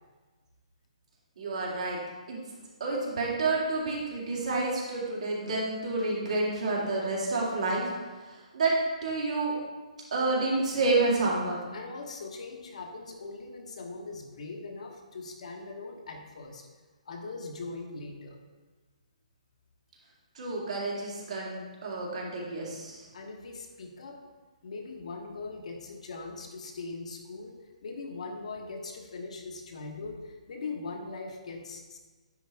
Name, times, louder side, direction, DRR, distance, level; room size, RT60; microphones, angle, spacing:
voice 1, 1.4-2.0 2.3-2.4 2.8-9.5 10.1-11.7 20.3-23.1, right 2 dB, 70° right, -4 dB, 2.3 m, -29 dB
voice 2, 11.7-16.7 17.0-18.4 23.1-24.2 24.6-32.0, left 3 dB, 65° left, 2 dB, 1.2 m, -41 dB
9.8 x 4.1 x 3.5 m, 1.3 s
hypercardioid pair, 150°, 4 cm